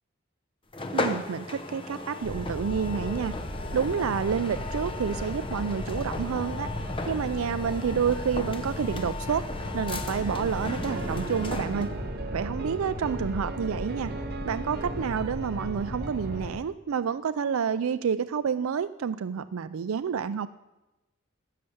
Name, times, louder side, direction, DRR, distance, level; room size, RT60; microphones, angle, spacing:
sound 1, 0.7-12.0, left 3 dB, 25° left, 0.9 m, -36 dB
voice 1, 0.9-3.4 3.7-6.7 7.1-11.9 12.3-14.1 14.4-20.5, right 7 dB, 90° right, 12 dB, 0.4 m, -29 dB
Boat Water vehicle, 2.2-16.5, equal, 55° left, 6.0 m, -36 dB
sound 2, 10.0-16.4, right 3 dB, 50° right, 0.6 m, -40 dB
15.5 x 6.6 x 8.0 m, 1.0 s
head